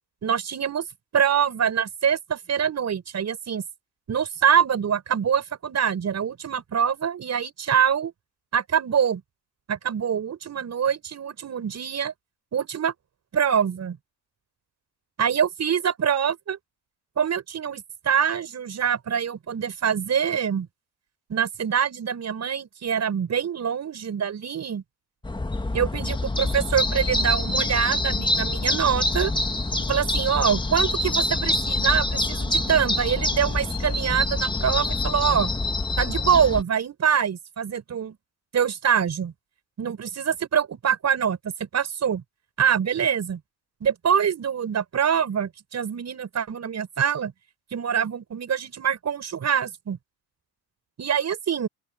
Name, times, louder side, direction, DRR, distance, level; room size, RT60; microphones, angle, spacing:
voice 1, 0.2-0.9 1.1-3.6 4.1-8.1 8.5-9.2 9.7-12.1 12.5-12.9 13.3-14.0 15.2-16.6 17.2-20.7 21.3-24.8 25.7-29.3 29.9-35.5 36.0-38.2 38.5-39.3 39.8-42.2 42.6-43.4 43.8-47.3 47.7-50.0 51.0-51.7, right 8 dB, 45° right, 6.7 m, -24 dB
sound 1, 25.2-36.6, left 2 dB, 10° left, 1.7 m, -26 dB
open air
cardioid pair, 105°, 37 cm